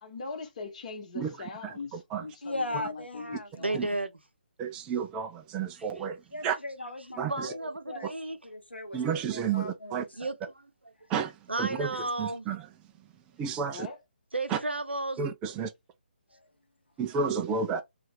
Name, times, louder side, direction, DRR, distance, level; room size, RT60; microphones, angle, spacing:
voice 1, 0.0-3.9 13.6-14.0, left 4 dB, 40° left, 0.9 m, -41 dB
voice 2, 2.4-3.5 6.3-8.1 8.4-10.2, left 2 dB, 85° left, 0.9 m, -38 dB
voice 3, 3.5-4.1 5.8-5.9 7.3-8.4 10.1-10.7 11.5-12.4 14.3-15.2, right 2 dB, 85° right, 0.7 m, -33 dB
voice 4, 4.6-6.2 6.4-6.5 7.2-7.5 8.9-10.0 11.1-11.3 11.6-11.9 12.2-12.6 13.4-13.9 14.5-14.6 15.2-15.7 17.0-17.8, right 6 dB, 15° right, 0.4 m, -31 dB
2.7 x 2.5 x 3.2 m
figure-of-eight pair, 140°, 6 cm